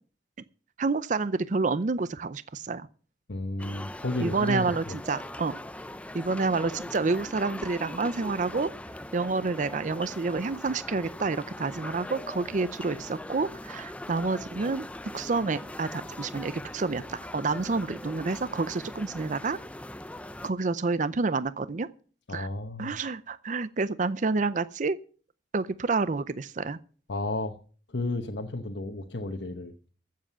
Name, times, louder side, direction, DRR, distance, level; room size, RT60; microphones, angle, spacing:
voice 1, 0.8-2.9 4.2-5.5 6.1-8.7 9.1-14.9 15.1-19.6 20.4-21.9 22.3-22.5 22.8-25.0 25.5-26.8, right 3 dB, 45° right, 15 dB, 0.5 m, -29 dB
voice 2, 3.3-5.0 22.3-22.9 27.1-27.6 27.9-29.7, left 2 dB, 85° left, 5 dB, 1.1 m, -32 dB
sound 1, 3.6-20.5, left 1 dB, 10° left, 0.5 m, -41 dB
14.5 x 7.6 x 6.8 m, 0.41 s
head